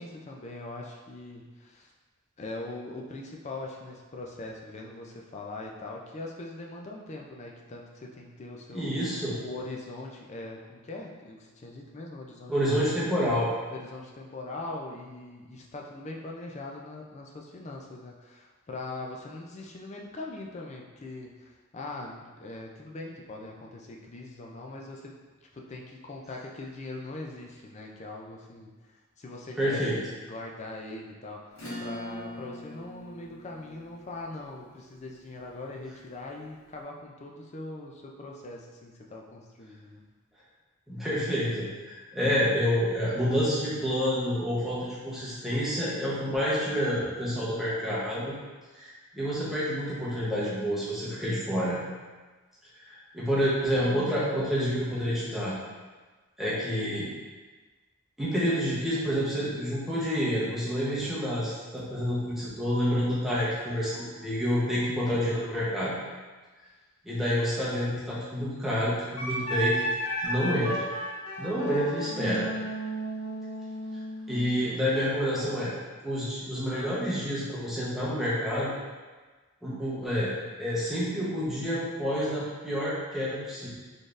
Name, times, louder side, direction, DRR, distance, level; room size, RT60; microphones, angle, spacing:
voice 1, 0.0-1.9 2.4-9.0 9.4-13.0 13.7-25.2 25.5-40.0 74.6-74.8, left 2 dB, 30° left, 0 dB, 0.4 m, -41 dB
voice 2, 8.7-9.4 12.5-13.5 29.6-30.0 40.9-48.3 48.7-51.8 52.8-55.6 56.4-57.1 58.2-66.0 67.0-69.7 70.2-70.7 71.4-72.5 74.3-75.7 76.0-78.7 79.6-83.7, equal, ahead, -9 dB, 0.9 m, -28 dB
Acoustic guitar / Strum, 31.5-36.5, left 1 dB, 60° left, 1.3 m, -44 dB
Wind instrument woodwind instrument, 69.2-74.5, equal, 90° left, 0.8 m, -33 dB
4.1 x 3.3 x 2.5 m, 1.3 s
head